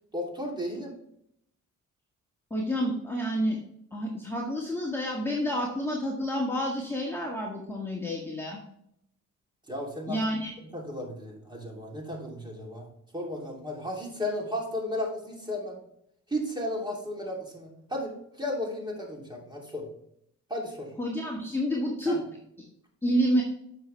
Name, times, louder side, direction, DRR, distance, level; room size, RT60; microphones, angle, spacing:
voice 1, 0.1-0.9 9.7-10.2 10.6-12.8 13.1-15.8 16.3-19.8 20.5-20.9 22.1-22.2, left 1 dB, 15° right, -1 dB, 3.0 m, -34 dB
voice 2, 2.5-3.6 3.9-8.6 10.1-10.5 21.0-22.2 23.0-23.4, equal, 10° left, -3 dB, 1.8 m, -29 dB
9.3 x 6.1 x 3.3 m, 0.73 s
cardioid pair, 90°, 30 cm